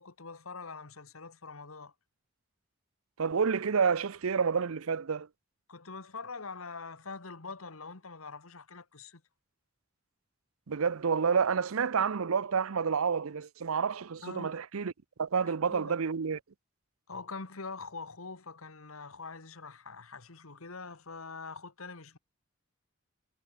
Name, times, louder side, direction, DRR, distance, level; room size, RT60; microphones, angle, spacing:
voice 1, 0.0-1.9 5.7-9.2 14.2-14.6 15.4-15.9 17.1-22.2, left 4 dB, 85° left, 1.8 m, -44 dB
voice 2, 3.2-5.3 10.7-14.9 15.2-16.4, right 6 dB, 85° right, 0.6 m, -29 dB
head